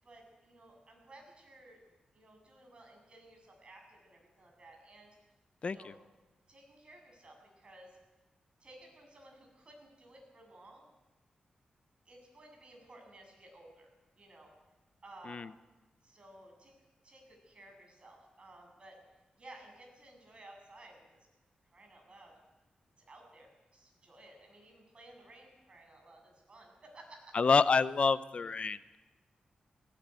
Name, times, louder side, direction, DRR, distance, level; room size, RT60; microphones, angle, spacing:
voice 1, 0.0-1.8 2.1-5.1 5.6-6.0 6.5-8.0 8.6-10.9 12.1-13.9 14.2-14.5 15.0-15.5 16.0-16.7 17.0-19.0 19.4-21.0 21.7-22.3 23.1-27.3, right 1 dB, 40° right, 2 dB, 7.8 m, -56 dB
voice 2, 27.3-29.0, left 4 dB, 50° left, 14 dB, 0.6 m, -28 dB
18.5 x 17.5 x 9.2 m, 1.1 s
wide cardioid pair, 95°, 3 cm